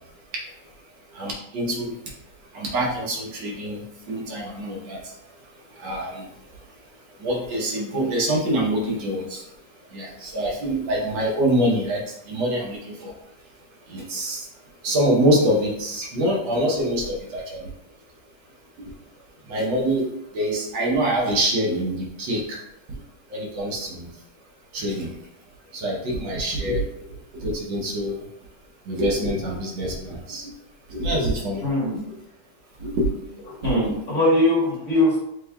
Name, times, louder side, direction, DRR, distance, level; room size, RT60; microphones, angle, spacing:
voice 1, 1.1-1.9 2.5-5.1 5.8-6.3 7.2-9.4 9.9-12.0 12.3-13.1 13.9-14.5 14.8-17.7 18.9-19.0 19.5-22.6 22.9-23.0 23.3-24.1 24.7-25.1 25.7-26.9 27.4-28.2 28.9-30.5 30.9-31.6 32.8-33.1 33.6-33.9, right 1 dB, 70° right, -3 dB, 1.6 m, -25 dB
voice 2, 31.6-32.0 33.6-35.2, left 1 dB, 40° left, -7 dB, 1.6 m, -21 dB
7.1 x 2.7 x 2.2 m, 0.80 s
omnidirectional pair, 2.2 m